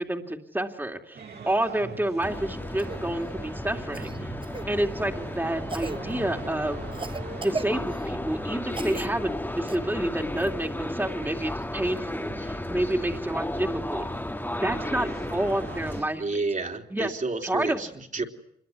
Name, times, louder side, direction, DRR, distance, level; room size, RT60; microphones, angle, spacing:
voice 1, 0.0-4.3 4.7-6.8 7.4-14.0 14.5-16.5 16.9-17.1 17.4-17.8, right 1 dB, 10° right, 3 dB, 2.6 m, -29 dB
sound 1, 1.1-16.1, right 4 dB, 75° right, 4.1 m, -44 dB
sound 2, 2.2-16.0, left 1 dB, 10° left, 1.7 m, -34 dB
Cough, 2.8-3.0 3.9-4.7 5.7-6.0 6.9-8.1 8.7-9.1 9.7-9.8 11.6-11.7, right 3 dB, 30° right, 1.1 m, -36 dB
voice 2, 16.2-18.2, right 3 dB, 50° right, 2 dB, 3.7 m, -30 dB
26.5 x 22.0 x 9.4 m, 0.73 s
cardioid pair, 65°, 17 cm